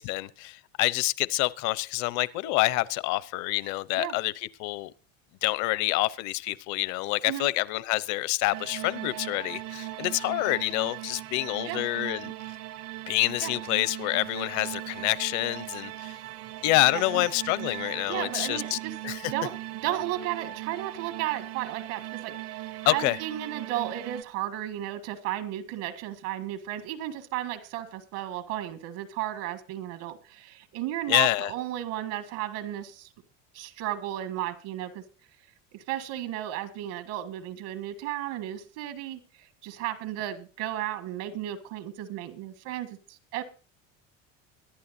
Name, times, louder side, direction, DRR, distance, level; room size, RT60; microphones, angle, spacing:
voice 1, 0.0-4.9 5.4-12.3 13.1-16.2 16.6-18.8 19.0-19.3 22.9-23.2 31.1-31.5, left 19 dB, 65° left, 0.8 m, -27 dB
sound 1, 8.5-24.2, right 16 dB, 55° right, 0.7 m, -39 dB
voice 2, 18.1-18.9 19.2-33.1 33.5-35.0 35.7-43.4, right 13 dB, 75° right, 1.8 m, -34 dB
23.0 x 11.0 x 2.7 m
cardioid pair, 150°, 30 cm